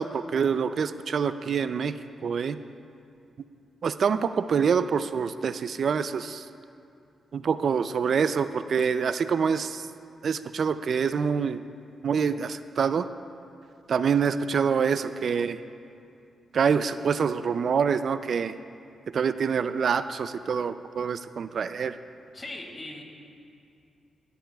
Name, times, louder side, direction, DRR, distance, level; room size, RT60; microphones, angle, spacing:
voice 1, 0.0-1.9 2.2-2.6 3.8-6.5 7.3-9.8 10.2-11.6 12.0-13.1 13.9-15.6 16.5-18.6 19.1-22.0, right 6 dB, 65° right, 12 dB, 0.3 m, -26 dB
voice 2, 22.3-23.0, left 2 dB, 30° left, 0 dB, 2.5 m, -39 dB
18.0 x 14.0 x 2.3 m, 2.5 s
cardioid pair, 75°, 0 cm